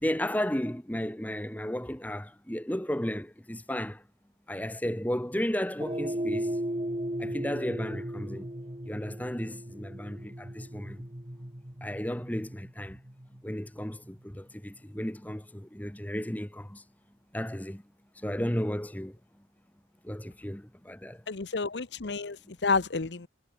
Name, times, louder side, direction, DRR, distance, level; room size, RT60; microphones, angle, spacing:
voice 1, 0.0-4.0 4.5-6.6 7.2-8.5 8.8-11.1 11.8-13.0 13.4-16.8 17.3-17.8 18.2-19.2 20.0-21.2, equal, 10° left, 1.2 m, -34 dB
sound 1, 5.8-14.2, right 1 dB, 30° right, 2.3 m, -37 dB
voice 2, 21.3-23.3, left 4 dB, 80° left, 0.9 m, -30 dB
head